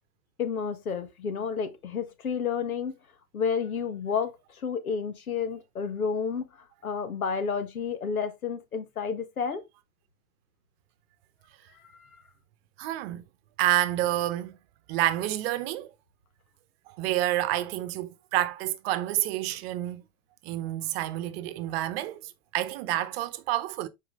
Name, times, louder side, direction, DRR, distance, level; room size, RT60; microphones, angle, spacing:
voice 1, 0.4-2.9 3.3-6.5 6.8-9.6 11.9-12.2, left 6 dB, 85° left, 1.4 m, -31 dB
voice 2, 12.8-13.2 13.6-14.6 14.9-15.9 17.0-20.0 20.4-23.9, right 14 dB, 45° right, 0.9 m, -28 dB
7.3 x 4.6 x 3.2 m
hypercardioid pair, 120°, 41 cm